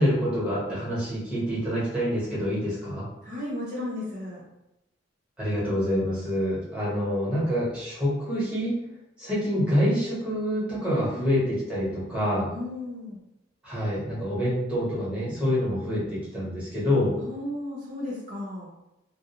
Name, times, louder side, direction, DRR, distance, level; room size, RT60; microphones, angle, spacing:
voice 1, 0.0-3.1 5.4-8.7 9.2-12.5 13.6-17.1, equal, 5° right, -8 dB, 1.0 m, -26 dB
voice 2, 3.2-4.4 10.9-11.1 12.5-13.2 17.2-18.7, left 1 dB, 45° right, -6 dB, 0.6 m, -34 dB
2.4 x 2.0 x 2.8 m, 0.90 s
head